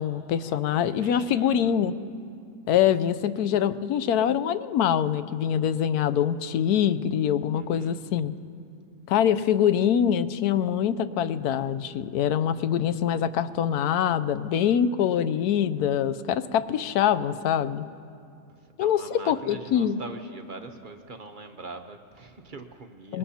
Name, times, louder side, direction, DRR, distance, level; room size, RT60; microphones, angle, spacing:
voice 1, 0.0-1.9 2.7-8.3 9.1-17.8 18.8-20.0 23.1-23.2, left 9 dB, 80° left, 13 dB, 1.1 m, -24 dB
voice 2, 0.9-1.8 7.5-8.0 18.8-23.2, right 3 dB, 45° right, 6 dB, 0.7 m, -43 dB
23.5 x 21.0 x 2.8 m, 2.5 s
omnidirectional pair, 1.7 m